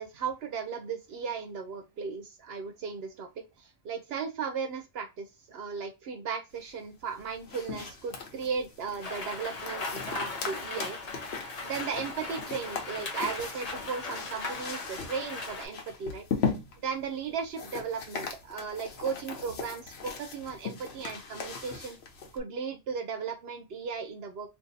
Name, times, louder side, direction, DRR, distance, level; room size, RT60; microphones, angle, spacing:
voice 1, 0.0-3.3 3.6-11.0 11.6-16.2 16.8-22.0 22.3-24.5, right 6 dB, 80° right, 5 dB, 0.9 m, -36 dB
sound 1, 7.1-22.4, left 5 dB, 90° left, 1.0 m, -39 dB
Rain, 9.0-15.7, left 3 dB, 40° left, 0.8 m, -38 dB
2.6 x 2.5 x 3.9 m, 0.24 s
omnidirectional pair, 1.0 m